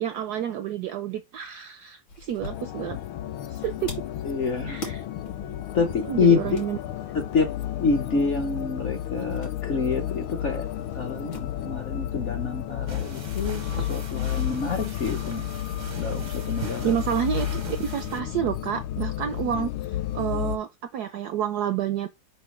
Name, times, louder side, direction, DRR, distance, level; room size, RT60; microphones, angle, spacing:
voice 1, 0.0-3.0 3.5-4.0 4.7-5.0 6.1-6.8 16.8-17.5 17.8-19.7 20.1-22.1, right 10 dB, 75° right, 0.9 m, -29 dB
sound 1, 2.1-13.5 13.7-13.8 15.1-15.8, left 2 dB, 70° left, 3.2 m, -45 dB
sound 2, 2.4-20.6, left 12 dB, 90° left, 1.5 m, -32 dB
voice 2, 4.2-4.8 5.7-6.6 7.1-7.5 7.8-10.7 10.9-15.5 16.0-16.9, left 5 dB, 55° left, 0.8 m, -27 dB
sound 3, 12.9-18.2, right 5 dB, 55° right, 0.4 m, -40 dB
5.9 x 5.4 x 3.2 m
omnidirectional pair, 2.2 m